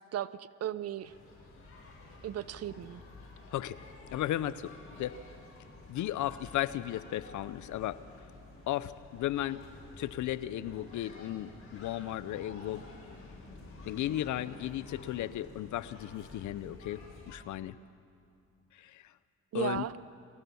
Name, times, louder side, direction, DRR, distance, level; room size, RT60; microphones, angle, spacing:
voice 1, 0.1-1.1 2.2-3.0 19.5-19.9, right 11 dB, 55° right, 17 dB, 0.7 m, -35 dB
sound 1, 1.0-17.4, left 2 dB, 50° left, 6.4 m, -51 dB
voice 2, 3.5-3.8 4.1-5.2 5.9-8.0 8.7-9.6 10.0-12.8 13.9-17.8 18.7-19.1 19.5-19.9, left 13 dB, 75° left, 16 dB, 0.7 m, -35 dB
22.5 x 17.0 x 7.1 m, 2.5 s
cardioid pair, 90°, 30 cm